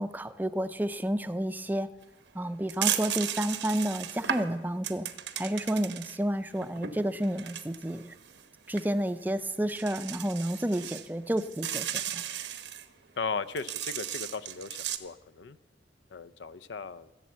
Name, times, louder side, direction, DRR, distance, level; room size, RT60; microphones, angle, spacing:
voice 1, 0.0-1.9 2.3-5.1 5.4-8.1 8.7-12.2, right 1 dB, 10° right, 11 dB, 0.4 m, -30 dB
sound 1, 2.0-2.1 2.7-6.2 6.6-8.4 8.7-8.9 9.4-9.5 9.7-11.1 11.4-12.9 13.6-15.0, right 10 dB, 85° right, 0.9 m, -35 dB
voice 2, 13.2-15.6 16.1-17.1, left 4 dB, 85° left, 15 dB, 0.5 m, -37 dB
15.5 x 8.1 x 7.4 m, 1.1 s
head